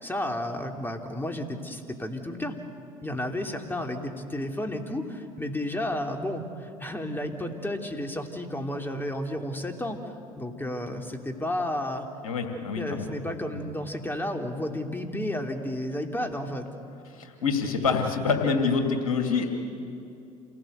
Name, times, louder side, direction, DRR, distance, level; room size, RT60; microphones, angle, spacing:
voice 1, 0.0-2.6 3.0-10.0 10.4-12.1 12.8-16.7, left 1 dB, 10° left, 3 dB, 3.0 m, -32 dB
voice 2, 12.2-13.1 13.5-13.6 17.1-19.5, left 5 dB, 85° left, 4 dB, 2.5 m, -26 dB
28.0 x 17.5 x 8.1 m, 2.6 s
hypercardioid pair, 65°, 18 cm